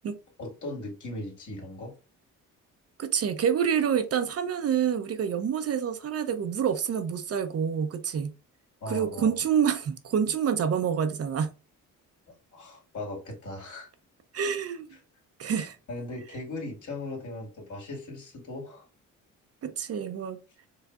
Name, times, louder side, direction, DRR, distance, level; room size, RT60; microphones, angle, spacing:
voice 1, 0.4-1.9 8.8-9.4 12.5-13.9 15.9-18.9, left 2 dB, 60° left, 2.2 m, -38 dB
voice 2, 3.0-8.3 8.9-11.5 14.3-15.0 15.4-15.8 19.6-20.4, right 7 dB, 45° right, 0.6 m, -27 dB
4.7 x 3.2 x 2.4 m
cardioid pair, 105°, 33 cm